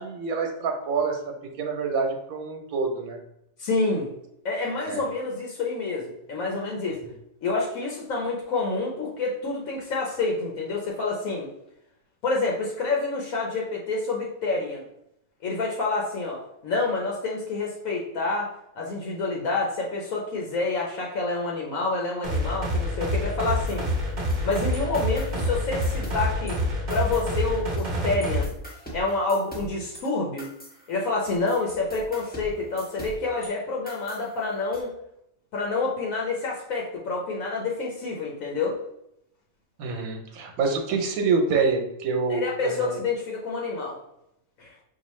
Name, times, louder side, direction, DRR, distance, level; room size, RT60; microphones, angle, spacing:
voice 1, 0.0-3.2 4.9-5.0 39.8-43.0, right 4 dB, 85° right, 4 dB, 1.2 m, -27 dB
voice 2, 3.6-4.1 4.4-7.0 7.4-11.5 12.2-14.9 15.4-23.9 24.4-26.6 26.9-28.5 28.9-30.5 30.9-34.9 35.5-38.8 42.3-44.0 44.6-44.7, left 3 dB, 75° left, -2 dB, 1.2 m, -28 dB
sound 1, 22.2-28.4, equal, 40° right, 0.8 m, -27 dB
sound 2, 23.7-26.5 26.9-27.9 28.2-33.5 33.9-34.8, equal, 10° left, 0.6 m, -42 dB
4.7 x 2.6 x 3.0 m, 0.80 s
omnidirectional pair, 1.4 m